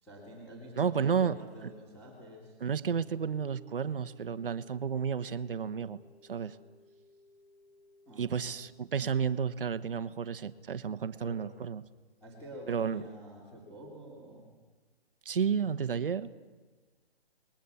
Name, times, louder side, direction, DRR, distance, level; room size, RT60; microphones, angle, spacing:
voice 1, 0.0-2.6 8.1-8.5 11.2-11.4 12.2-14.4, right 1 dB, 5° left, -6 dB, 3.4 m, -48 dB
voice 2, 0.8-1.4 1.6-1.7 2.6-6.0 6.3-6.6 8.2-11.8 12.7-13.0 15.2-16.3, right 7 dB, 60° right, 12 dB, 1.3 m, -31 dB
sound 1, 2.6-8.7, left 2 dB, 15° right, 1.5 m, -62 dB
29.5 x 21.5 x 7.2 m, 1.3 s
hypercardioid pair, 175°, 31 cm